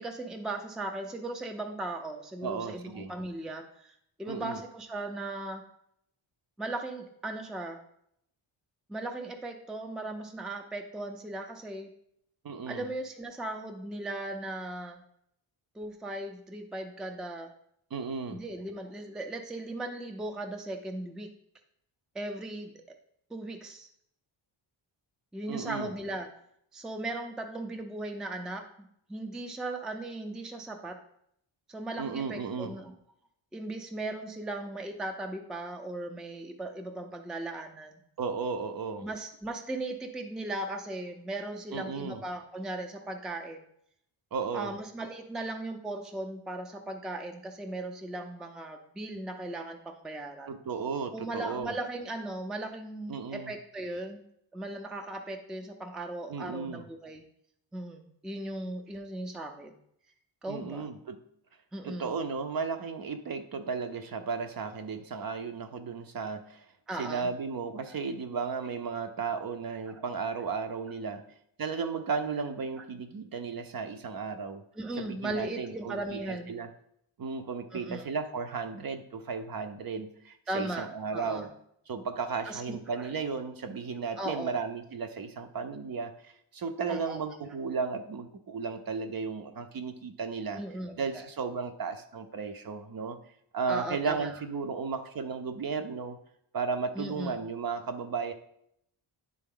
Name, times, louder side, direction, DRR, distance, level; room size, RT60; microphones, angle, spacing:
voice 1, 0.0-5.6 6.6-7.8 8.9-11.9 12.7-15.0 15.7-17.5 18.3-21.3 22.1-22.8 23.3-23.9 25.3-26.3 26.7-31.0 31.7-32.9 33.5-38.0 39.0-43.7 44.5-50.5 51.1-54.2 54.5-57.2 57.7-59.7 60.4-60.9 61.7-62.1 65.3-65.4 66.9-67.3 67.9-68.0 69.9-70.0 74.7-76.5 77.7-78.1 80.5-81.5 82.4-83.1 84.2-84.6 86.9-87.2 87.4-87.6 90.5-91.2 93.7-94.4 96.9-97.4, right 2 dB, ahead, 3 dB, 0.4 m, -37 dB
voice 2, 2.4-3.1 4.3-4.6 12.4-12.9 17.9-18.4 25.5-25.9 32.0-32.7 38.2-39.1 41.7-42.2 44.3-44.8 50.5-51.7 53.1-53.5 56.3-56.9 60.5-61.2 61.8-66.7 67.0-71.2 71.6-74.6 75.0-76.7 77.2-81.5 81.9-90.6 91.0-93.2 93.5-96.2 96.5-98.3, right 5 dB, 45° right, 8 dB, 0.6 m, -34 dB
10.0 x 3.8 x 3.7 m, 0.72 s
wide cardioid pair, 160°, 50 cm